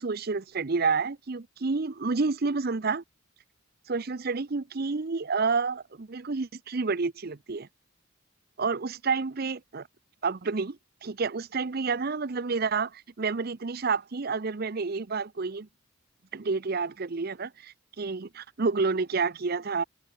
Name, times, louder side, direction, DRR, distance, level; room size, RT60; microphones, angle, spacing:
voice 1, 0.0-3.0 3.9-7.7 8.6-9.9 10.2-15.7 16.3-19.8, right 4 dB, 50° right, 0.7 m, -29 dB
open air
head